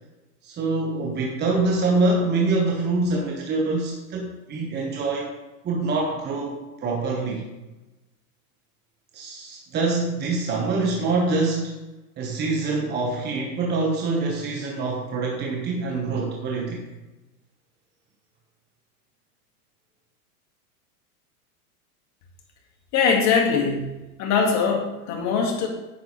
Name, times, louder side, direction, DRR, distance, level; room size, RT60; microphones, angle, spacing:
voice 1, 0.4-5.3 5.6-7.4 9.1-11.8 12.2-16.8, right 3 dB, 20° right, -1 dB, 1.1 m, -25 dB
voice 2, 22.9-23.9 24.2-25.7, left 5 dB, 35° left, 1 dB, 1.8 m, -22 dB
9.4 x 6.7 x 3.1 m, 1.1 s
supercardioid pair, 135°, 46 cm